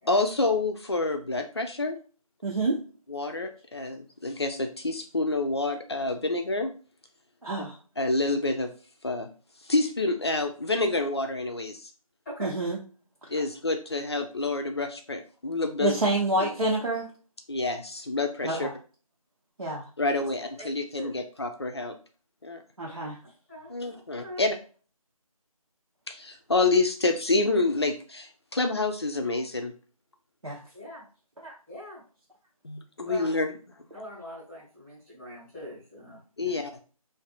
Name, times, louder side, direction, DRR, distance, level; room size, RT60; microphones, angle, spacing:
voice 1, 0.1-2.0 3.1-6.7 8.0-8.7 9.0-9.3 9.6-11.9 13.3-16.0 16.4-16.5 17.5-18.7 20.0-21.9 22.4-22.6 23.7-24.6 26.1-29.7 32.6-33.5 36.4-36.8, left 2 dB, 45° left, 5 dB, 0.5 m, -28 dB
voice 2, 2.4-2.8 7.4-7.8 12.4-12.8 15.8-17.1 18.4-18.7 19.6-19.8 22.8-23.2 30.4-30.6 31.4-31.5, right 2 dB, 70° right, -4 dB, 0.9 m, -27 dB
voice 3, 23.5-24.4 30.7-31.0 31.7-32.0 33.0-33.3 33.9-36.6, left 1 dB, ahead, -11 dB, 0.9 m, -42 dB
2.5 x 2.4 x 2.4 m, 0.38 s
figure-of-eight pair, 165°, 19 cm